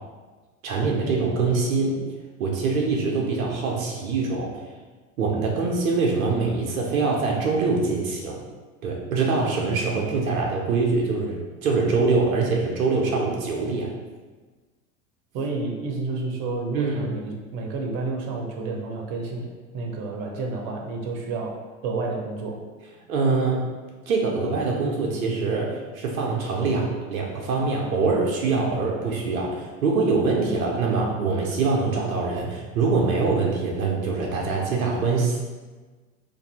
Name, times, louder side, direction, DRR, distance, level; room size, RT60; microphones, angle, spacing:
voice 1, 0.6-2.0 2.4-4.6 5.2-8.4 8.8-13.9 16.7-17.1 23.1-23.7 24.1-35.4, right 4 dB, 85° right, -1 dB, 0.7 m, -24 dB
voice 2, 15.3-19.5 19.7-22.6, right 3 dB, 50° right, 1 dB, 0.8 m, -30 dB
2.6 x 2.6 x 4.1 m, 1.3 s
hypercardioid pair, 90°, 41 cm